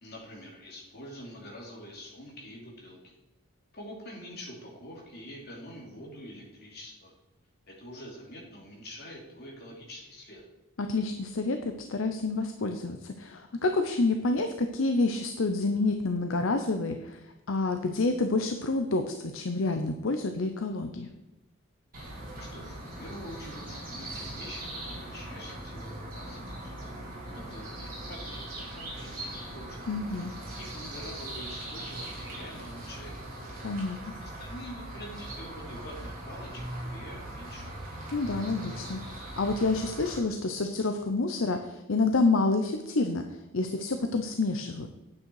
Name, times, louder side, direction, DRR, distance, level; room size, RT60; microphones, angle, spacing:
voice 1, 0.0-3.2 3.7-7.1 7.7-10.4 22.4-26.7 27.3-29.8 30.6-33.6 34.2-37.7, equal, 50° left, -2 dB, 3.0 m, -46 dB
voice 2, 10.8-21.1 29.9-30.3 33.6-34.1 38.1-44.9, left 3 dB, 65° left, 6 dB, 0.7 m, -28 dB
sound 1, 21.9-40.2, right 1 dB, 40° right, 3.3 m, -40 dB
9.3 x 8.5 x 4.8 m, 0.99 s
head